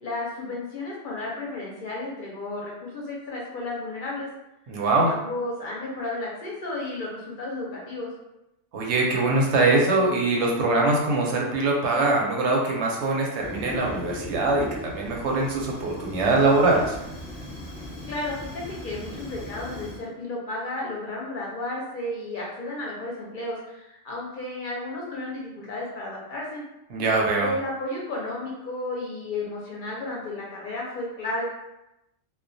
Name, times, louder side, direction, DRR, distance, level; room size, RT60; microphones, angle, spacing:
voice 1, 0.0-4.3 5.1-8.1 18.0-26.6 27.4-31.4, left 2 dB, 55° left, -4 dB, 0.6 m, -33 dB
voice 2, 4.7-5.1 8.7-17.0 26.9-27.5, right 2 dB, 80° right, -1 dB, 0.9 m, -22 dB
Fire, 13.4-20.0, left 1 dB, ahead, 0.8 m, -38 dB
2.2 x 2.2 x 2.5 m, 0.90 s
omnidirectional pair, 1.2 m